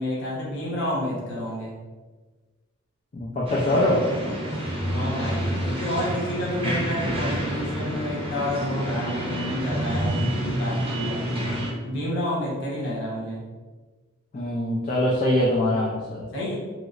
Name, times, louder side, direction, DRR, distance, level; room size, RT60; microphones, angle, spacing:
voice 1, 0.0-1.7 4.8-11.5 11.8-13.4 16.3-16.6, left 1 dB, 60° left, -5 dB, 0.9 m, -29 dB
voice 2, 3.1-4.0 14.3-16.3, left 1 dB, 40° left, -5 dB, 0.4 m, -23 dB
sound 1, 3.5-11.7, right 1 dB, 25° right, 0.6 m, -28 dB
3.0 x 2.9 x 2.4 m, 1.3 s
head